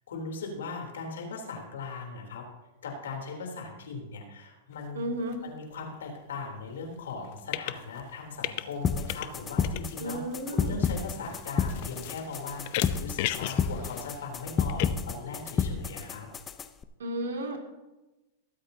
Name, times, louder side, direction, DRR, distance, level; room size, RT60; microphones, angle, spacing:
voice 1, 0.1-2.5 2.8-5.1 5.4-10.2 10.5-16.3, left 4 dB, 85° left, 1 dB, 3.4 m, -39 dB
sound 1, 4.7-4.8 5.3-5.4 7.1-8.0 8.3-9.4 9.6-14.9, left 15 dB, 55° left, 0.6 m, -36 dB
voice 2, 4.9-5.4 10.0-10.8 17.0-17.6, right 1 dB, 90° right, 1 dB, 2.5 m, -33 dB
sound 2, 8.8-16.8, left 6 dB, 20° left, 0.7 m, -31 dB
21.0 x 8.5 x 2.8 m, 1.1 s
hypercardioid pair, 130°, 0 cm